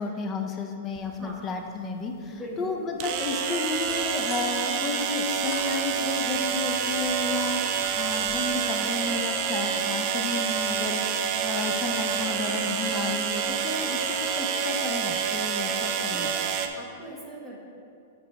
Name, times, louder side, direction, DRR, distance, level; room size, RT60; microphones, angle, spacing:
voice 1, 0.0-16.3, left 4 dB, 20° left, 4 dB, 0.5 m, -32 dB
voice 2, 1.0-1.5 2.3-2.8 12.5-12.8 15.6-15.8 16.1-16.4 16.8-17.6, right 1 dB, 5° right, -5 dB, 1.2 m, -40 dB
sound 1, 1.0-1.1 3.0-16.7, right 7 dB, 35° right, 0.5 m, -28 dB
sound 2, 3.7-6.4 6.8-8.5, left 2 dB, 35° left, 1.7 m, -46 dB
9.9 x 3.4 x 5.1 m, 2.5 s
supercardioid pair, 165°, 0 cm